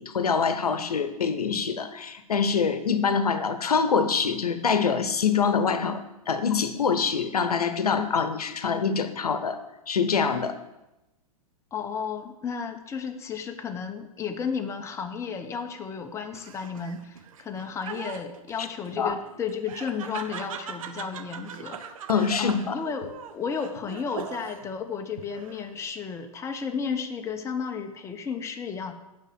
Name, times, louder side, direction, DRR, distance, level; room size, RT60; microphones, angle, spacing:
voice 1, 0.0-6.0 6.3-9.6 9.9-10.6 19.0-19.1 22.1-22.8, left 6 dB, 80° left, 10 dB, 0.9 m, -25 dB
voice 2, 11.7-21.8 22.4-28.9, left 6 dB, 15° left, 4 dB, 0.7 m, -33 dB
Laughter, 16.3-24.7 25.2-25.8, right 7 dB, 60° right, 0.7 m, -41 dB
8.3 x 5.2 x 7.3 m, 0.95 s
figure-of-eight pair, 105°, 19 cm